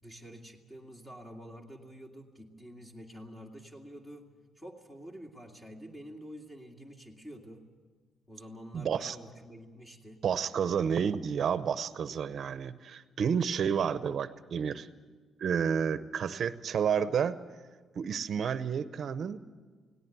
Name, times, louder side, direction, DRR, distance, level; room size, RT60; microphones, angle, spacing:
voice 1, 0.0-4.3 4.6-7.7 8.3-10.2, equal, 15° left, 1 dB, 2.2 m, -48 dB
voice 2, 8.7-9.2 10.2-14.9 15.4-17.4 18.0-19.4, right 7 dB, 60° right, 13 dB, 0.7 m, -30 dB
18.0 x 17.5 x 9.2 m, 1.5 s
cardioid pair, 90°, 0 cm